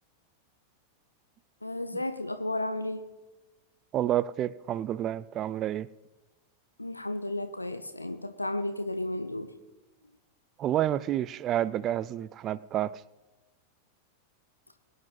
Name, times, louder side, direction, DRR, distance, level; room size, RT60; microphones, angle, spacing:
voice 1, 1.6-3.0 6.8-9.5, left 1 dB, 85° left, 0.8 m, -33 dB
voice 2, 3.9-5.9 10.6-13.0, right 11 dB, 30° right, 0.5 m, -29 dB
22.0 x 9.7 x 4.0 m
figure-of-eight pair, 90°, 0 cm